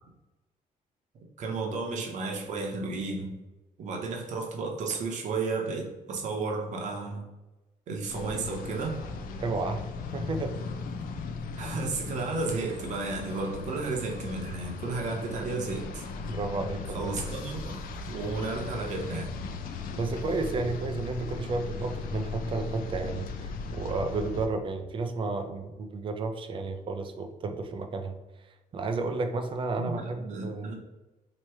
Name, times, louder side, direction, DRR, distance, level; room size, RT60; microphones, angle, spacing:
voice 1, 1.4-3.3 3.8-7.2 7.9-9.0 11.6-16.0 16.9-17.8 18.1-19.3 29.8-30.7, right 3 dB, 55° right, 0 dB, 0.9 m, -33 dB
sound 1, 8.1-24.5, left 4 dB, 80° left, 0.5 m, -37 dB
voice 2, 9.4-9.8 10.1-10.6 16.3-17.2 20.0-28.2 28.7-30.7, right 3 dB, 35° right, 6 dB, 0.4 m, -32 dB
3.1 x 2.9 x 4.5 m, 1.0 s
cardioid pair, 170°, 15 cm